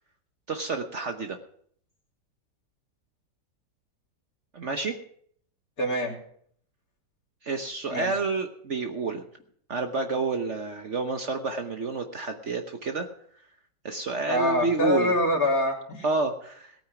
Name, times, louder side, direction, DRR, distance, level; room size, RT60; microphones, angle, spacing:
voice 1, 0.5-1.4 4.5-5.0 7.4-9.2 9.7-13.1 13.8-15.2 16.0-16.7, right 3 dB, 50° right, 5 dB, 1.1 m, -29 dB
voice 2, 5.8-6.1 7.9-8.1 14.3-16.1, left 1 dB, 55° left, 0 dB, 3.4 m, -25 dB
18.0 x 9.0 x 5.8 m, 0.63 s
omnidirectional pair, 1.8 m